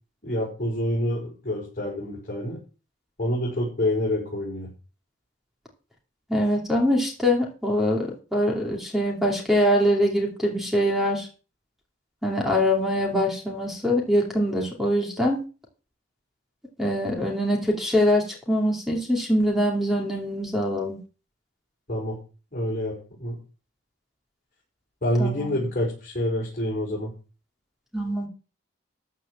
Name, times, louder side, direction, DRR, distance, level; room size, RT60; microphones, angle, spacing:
voice 1, 0.2-2.6 3.2-4.7 21.9-22.2 22.5-23.4 25.0-27.1, left 1 dB, 40° left, -5 dB, 5.1 m, -27 dB
voice 2, 6.3-11.3 12.2-15.4 16.8-21.0 25.2-25.6 27.9-28.3, equal, ahead, 0 dB, 2.6 m, -23 dB
13.5 x 4.9 x 7.6 m, 0.34 s
head